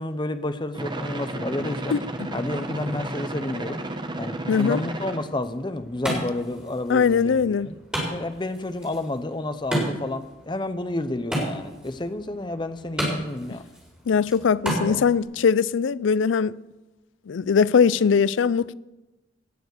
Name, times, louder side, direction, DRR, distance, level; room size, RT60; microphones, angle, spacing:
voice 1, 0.0-2.0 2.3-3.8 4.2-7.7 8.1-13.6 14.9-15.1, left 2 dB, 25° left, 0.7 m, -30 dB
sound 1, 0.7-5.3, right 1 dB, 25° right, 0.9 m, -32 dB
voice 2, 1.9-2.3 4.5-4.8 6.9-7.7 14.1-16.6 17.3-18.7, left 6 dB, 80° left, 0.4 m, -21 dB
Wood, 5.2-15.2, right 1 dB, 5° right, 4.5 m, -33 dB
17.5 x 7.0 x 6.7 m
head